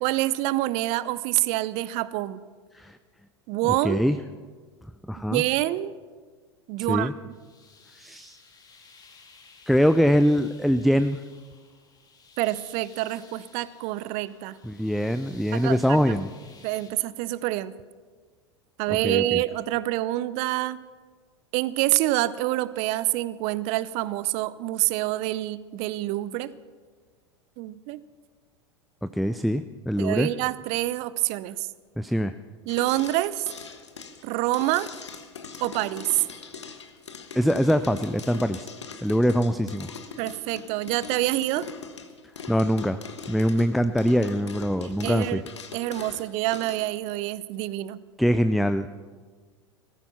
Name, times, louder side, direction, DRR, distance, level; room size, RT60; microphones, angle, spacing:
voice 1, 0.0-2.4 3.5-4.0 5.3-5.9 6.7-7.3 12.4-14.6 15.5-16.2 16.6-17.7 18.8-20.8 21.5-26.5 27.6-28.0 30.0-31.7 32.7-33.5 34.2-34.9 35.6-36.2 40.2-41.7 44.8-48.0, right 16 dB, 45° right, 17 dB, 0.7 m, -27 dB
voice 2, 3.8-4.2 5.1-5.4 6.9-7.1 8.0-8.4 9.7-11.2 14.6-16.3 19.0-19.4 29.0-30.3 32.0-32.4 37.3-38.7 39.0-39.9 42.5-43.0 43.3-45.4 48.2-48.9, equal, ahead, 11 dB, 0.4 m, -23 dB
sound 1, 7.3-16.9, left 4 dB, 25° left, 2.3 m, -54 dB
sound 2, 32.7-46.9, left 5 dB, 75° left, 1.4 m, -41 dB
16.0 x 14.0 x 5.8 m, 1.5 s
figure-of-eight pair, 85°, 15 cm